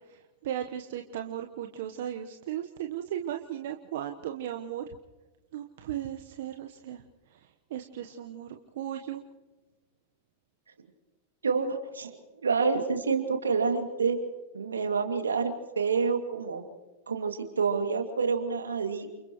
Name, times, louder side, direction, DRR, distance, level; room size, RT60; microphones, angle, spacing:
voice 1, 0.0-4.8 5.5-7.0 7.3-9.2, right 11 dB, 65° right, 5 dB, 1.1 m, -36 dB
voice 2, 11.4-14.2 14.5-16.6 17.1-19.1, right 5 dB, 85° right, 5 dB, 2.5 m, -28 dB
30.0 x 28.5 x 3.1 m, 1.2 s
hypercardioid pair, 95°, 0 cm